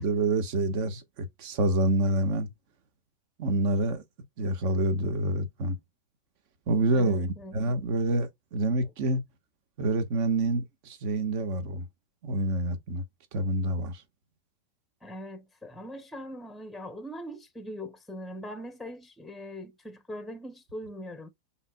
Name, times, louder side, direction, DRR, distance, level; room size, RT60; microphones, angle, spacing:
voice 1, 0.0-2.5 3.4-4.0 4.4-5.8 6.7-9.2 9.8-11.9 12.2-13.0 13.3-14.0, right 2 dB, 55° right, 1.4 m, -27 dB
voice 2, 6.9-7.7 15.0-21.3, equal, ahead, 0.8 m, -41 dB
5.5 x 3.4 x 2.3 m
hypercardioid pair, 120°, 0 cm